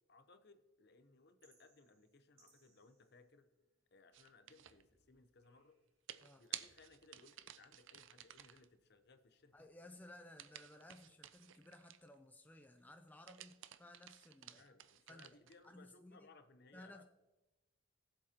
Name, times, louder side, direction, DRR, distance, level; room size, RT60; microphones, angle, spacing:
voice 1, 0.1-3.5 3.9-5.8 6.4-9.7 14.5-17.0, left 3 dB, 50° left, 9 dB, 0.8 m, -64 dB
sound 1, 1.4-3.8 4.3-6.0 6.4-8.9 9.3-10.0, right 2 dB, 45° right, 3.7 m, -78 dB
sound 2, 4.1-4.8 6.1-8.7 10.4-12.1 13.1-15.6, right 12 dB, 60° right, 0.5 m, -53 dB
voice 2, 9.5-14.6 15.1-15.4 15.6-16.3 16.7-17.0, left 1 dB, 10° left, 6 dB, 0.4 m, -58 dB
17.5 x 7.7 x 2.9 m, 1.1 s
head